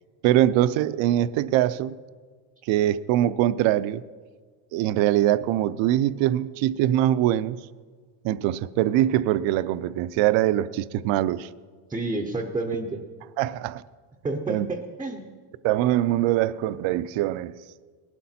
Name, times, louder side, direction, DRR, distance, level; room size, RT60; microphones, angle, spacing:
voice 1, 0.2-2.0 2.7-4.0 4.7-7.6 8.2-11.5 13.4-13.8 14.5-14.7 15.6-17.5, right 13 dB, 70° right, 17 dB, 0.6 m, -23 dB
voice 2, 11.9-13.0 14.2-15.3, right 2 dB, 10° right, 3 dB, 0.5 m, -29 dB
19.0 x 12.0 x 4.2 m, 1.5 s
cardioid pair, 170°, 48 cm